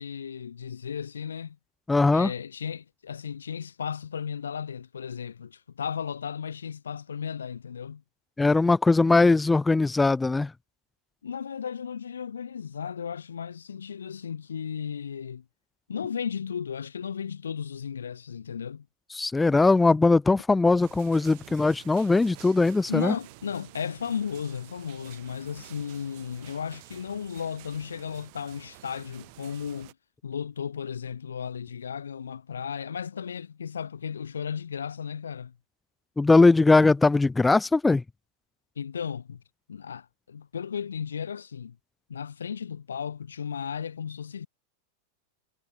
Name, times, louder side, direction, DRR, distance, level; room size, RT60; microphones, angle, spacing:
voice 1, 0.0-1.6 2.1-8.0 11.2-15.4 15.9-18.9 22.9-29.9 30.2-35.6 38.8-39.4 39.7-41.8 42.1-44.5, left 7 dB, 70° left, 2.1 m, -35 dB
voice 2, 1.9-2.3 8.4-10.5 19.1-23.1 36.2-38.0, left 3 dB, 10° left, 1.2 m, -20 dB
sound 1, 20.8-29.9, right 30 dB, 45° right, 4.7 m, -50 dB
figure-of-eight pair, 90°, 0 cm